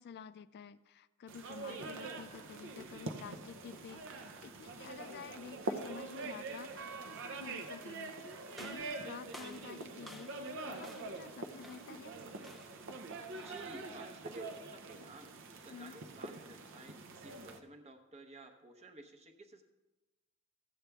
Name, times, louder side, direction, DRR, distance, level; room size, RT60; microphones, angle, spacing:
voice 1, 0.0-12.1 15.7-15.9, left 6 dB, 50° left, 15 dB, 0.3 m, -51 dB
sound 1, 1.3-17.6, right 3 dB, 60° right, 0.7 m, -44 dB
sound 2, 8.5-10.5 10.8-11.2 11.6-12.0 12.4-12.9 13.4-13.8, equal, ahead, 0.6 m, -54 dB
voice 2, 13.4-19.6, right 2 dB, 30° right, 5 dB, 0.9 m, -53 dB
14.0 x 8.2 x 3.5 m, 1.1 s
head